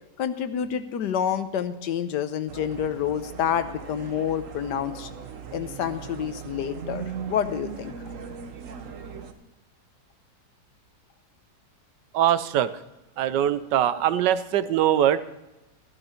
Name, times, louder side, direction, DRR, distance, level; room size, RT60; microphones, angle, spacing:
voice 1, 0.2-5.1 5.5-7.9, left 8 dB, 80° left, 11 dB, 1.4 m, -28 dB
sound 1, 2.5-9.3, right 7 dB, 55° right, 1.2 m, -39 dB
voice 2, 12.1-12.8 13.2-15.2, right 11 dB, 85° right, 14 dB, 1.3 m, -22 dB
13.5 x 11.5 x 4.4 m, 1.0 s
omnidirectional pair, 1.8 m